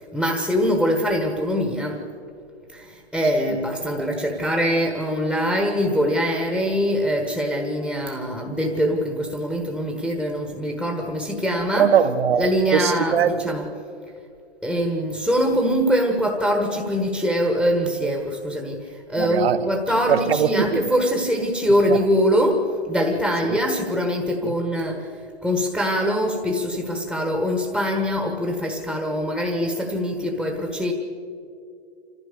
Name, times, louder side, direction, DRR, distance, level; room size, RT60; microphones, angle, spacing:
voice 1, 0.1-2.1 2.7-11.9 12.4-13.2 13.4-13.7 14.6-25.1 25.4-30.9, equal, ahead, 2 dB, 1.3 m, -23 dB
voice 2, 11.8-13.6 19.2-19.7 20.1-20.8 21.9-22.0 23.4-23.6 24.4-24.5, right 8 dB, 65° right, 9 dB, 1.4 m, -21 dB
26.5 x 15.0 x 6.8 m, 2.5 s
hypercardioid pair, 145°, 32 cm